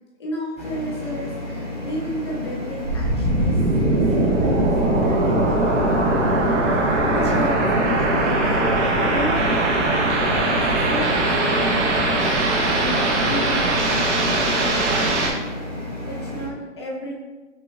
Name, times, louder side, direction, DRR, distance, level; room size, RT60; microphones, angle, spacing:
voice 1, 0.2-3.7 4.1-6.0 7.1-15.5 16.0-17.1, left 1 dB, 20° left, -4 dB, 0.6 m, -33 dB
sound 1, 0.6-16.5, left 1 dB, 20° right, 1.1 m, -32 dB
sound 2, 2.8-15.3, right 2 dB, 65° right, 1.2 m, -20 dB
5.8 x 3.6 x 2.5 m, 1.2 s
hypercardioid pair, 180°, 39 cm